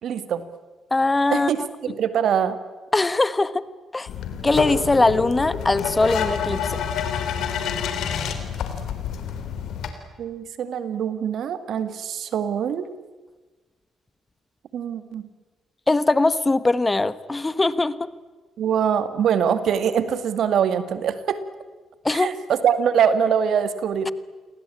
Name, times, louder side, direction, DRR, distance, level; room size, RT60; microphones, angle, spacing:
voice 1, 0.0-0.4 1.3-2.6 10.2-12.9 14.7-15.3 18.6-21.4 22.1-24.1, right 8 dB, 65° right, 11 dB, 2.2 m, -23 dB
voice 2, 0.9-1.5 2.9-3.7 3.9-4.1 4.4-6.8 15.9-18.1 22.0-22.3 24.0-24.1, left 2 dB, 25° left, 15 dB, 1.4 m, -21 dB
sound 1, 4.1-9.9, left 7 dB, 70° left, 3.7 m, -28 dB
29.5 x 23.0 x 8.7 m, 1.3 s
hypercardioid pair, 50°, 0 cm